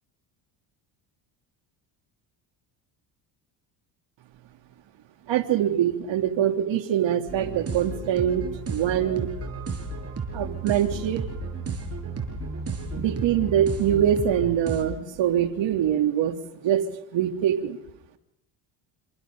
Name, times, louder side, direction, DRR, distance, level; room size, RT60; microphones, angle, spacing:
voice 1, 5.3-9.3 10.3-11.2 13.0-16.4 16.6-16.8 17.1-17.8, right 10 dB, 65° right, 6 dB, 3.3 m, -24 dB
sound 1, 7.3-14.8, right 3 dB, 30° right, 6.5 m, -33 dB
29.5 x 26.5 x 3.9 m, 0.78 s
cardioid pair, 105°, 48 cm